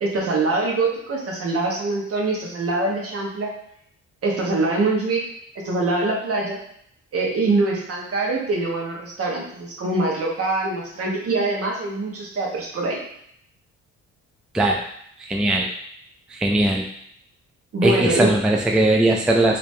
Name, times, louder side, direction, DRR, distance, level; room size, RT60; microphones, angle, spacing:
voice 1, 0.0-3.5 4.2-5.3 5.5-6.6 7.1-13.0 17.7-18.3, right 2 dB, 50° right, -2 dB, 1.2 m, -24 dB
voice 2, 15.2-15.7 16.3-16.9 17.8-19.6, right 1 dB, 5° right, 1 dB, 0.3 m, -19 dB
3.4 x 2.9 x 3.2 m, 0.70 s
cardioid pair, 90°, 30 cm